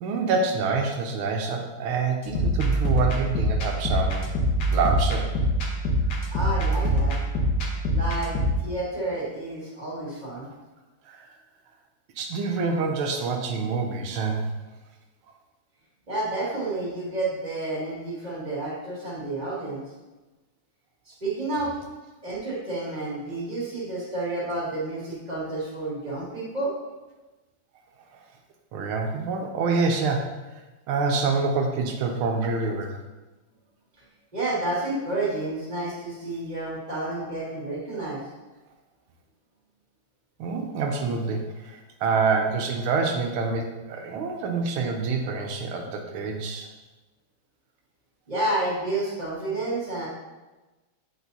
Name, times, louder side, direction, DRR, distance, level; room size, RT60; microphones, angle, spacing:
voice 1, 0.0-4.3 4.7-5.3 11.1-11.3 12.2-14.5 28.7-30.3 30.9-33.0 40.4-46.7, right 4 dB, 85° right, 2 dB, 1.6 m, -26 dB
sound 1, 2.2-8.6, equal, 60° left, 1.4 m, -24 dB
voice 2, 6.3-7.2 7.9-10.5 16.1-19.8 21.1-21.7 22.2-26.7 34.3-38.2 48.3-50.1, right 2 dB, 20° right, -7 dB, 1.8 m, -30 dB
8.0 x 4.3 x 2.7 m, 1.1 s
omnidirectional pair, 2.3 m